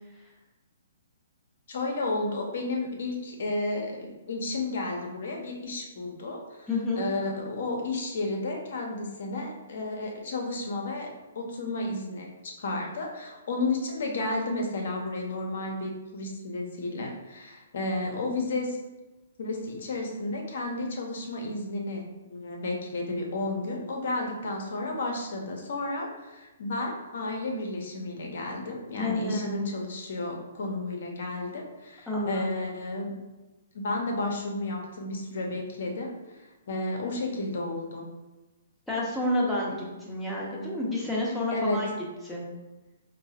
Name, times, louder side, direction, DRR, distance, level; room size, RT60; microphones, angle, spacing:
voice 1, 1.7-6.7 7.0-18.8 19.4-33.2 33.7-38.1 41.5-41.8, left 2 dB, 60° left, 1 dB, 0.8 m, -32 dB
voice 2, 6.7-7.0 28.9-29.6 32.1-32.4 38.9-41.9 42.3-42.4, left 1 dB, 5° left, -6 dB, 0.9 m, -29 dB
4.5 x 2.1 x 2.8 m, 1.1 s
hypercardioid pair, 130°, 0 cm